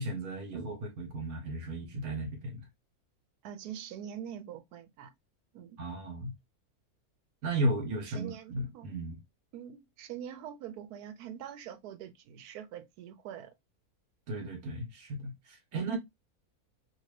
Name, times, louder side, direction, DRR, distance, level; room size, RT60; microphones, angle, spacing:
voice 1, 0.0-2.7 5.8-6.3 7.4-9.2 14.3-16.0, right 1 dB, 70° right, 1.5 m, -35 dB
voice 2, 3.4-5.1 5.5-5.8 8.1-9.0 9.5-13.5, right 9 dB, 90° right, 1.1 m, -44 dB
2.7 x 2.7 x 3.1 m
omnidirectional pair, 1.6 m